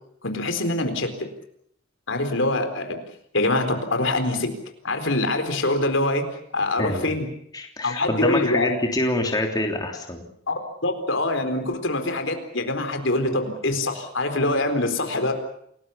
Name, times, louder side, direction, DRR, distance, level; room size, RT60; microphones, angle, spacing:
voice 1, 0.2-1.3 2.1-3.0 3.3-4.5 4.8-7.3 7.8-8.8 10.5-10.6 10.8-15.3, left 2 dB, 65° left, 7 dB, 4.2 m, -24 dB
voice 2, 6.8-7.2 7.5-10.3, left 1 dB, 20° left, 2 dB, 3.3 m, -26 dB
29.5 x 20.5 x 7.1 m, 0.70 s
head